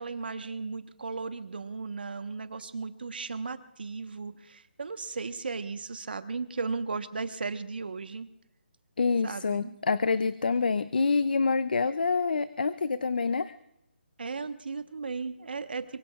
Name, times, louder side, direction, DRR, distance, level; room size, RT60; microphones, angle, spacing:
voice 1, 0.0-8.3 9.2-9.8 14.2-16.0, right 4 dB, 55° right, 10 dB, 1.2 m, -36 dB
voice 2, 9.0-13.5, left 4 dB, 50° left, 15 dB, 0.5 m, -26 dB
24.0 x 23.0 x 2.4 m, 0.85 s
hypercardioid pair, 180°, 6 cm